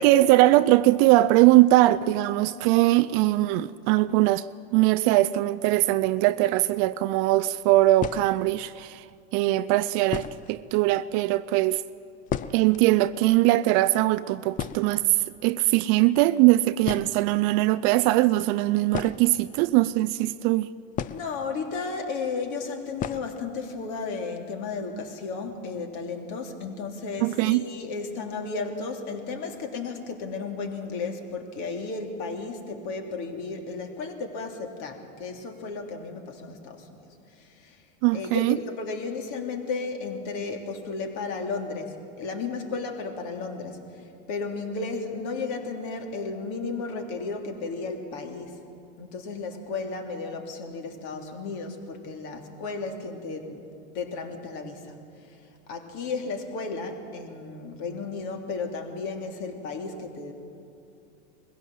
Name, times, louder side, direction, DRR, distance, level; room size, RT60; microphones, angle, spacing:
voice 1, 0.0-4.5 4.7-9.0 9.3-11.8 12.5-15.0 15.4-20.7 27.2-27.6 38.0-38.6, right 17 dB, 40° right, 0.4 m, -21 dB
sound 1, 6.9-7.1 8.0-8.6 9.5-9.6 10.1-10.6 10.9-11.0 11.2-11.4 11.8-12.9 13.1-13.2 13.5-13.8 14.1-14.2 14.5-15.5 16.4-16.5 16.8-17.4 18.9-20.0 20.9-21.7 22.0-22.1 23.0-23.4 23.7-23.8 24.2-24.3 24.7-25.1, left 8 dB, 20° left, 0.5 m, -34 dB
voice 2, 21.1-37.0 37.3-37.8 38.1-48.6 49.0-53.6 53.9-54.9 55.2-55.4 55.7-60.3, left 4 dB, 50° left, 3.1 m, -34 dB
21.5 x 16.0 x 7.6 m
supercardioid pair, 125°, 37 cm